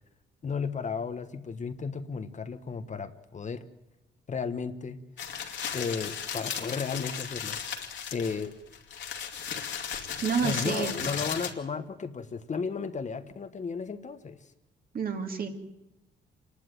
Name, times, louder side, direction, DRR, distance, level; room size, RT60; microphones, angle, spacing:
voice 1, 0.4-3.7 4.3-5.0 5.7-8.6 10.4-14.5, left 5 dB, 35° left, 9 dB, 1.2 m, -34 dB
sound 1, 5.2-11.5, left 7 dB, 65° left, 2.6 m, -35 dB
voice 2, 10.2-10.9 14.9-15.5, right 6 dB, 50° right, 4 dB, 2.6 m, -29 dB
26.5 x 11.5 x 9.2 m, 0.91 s
cardioid pair, 90°, 20 cm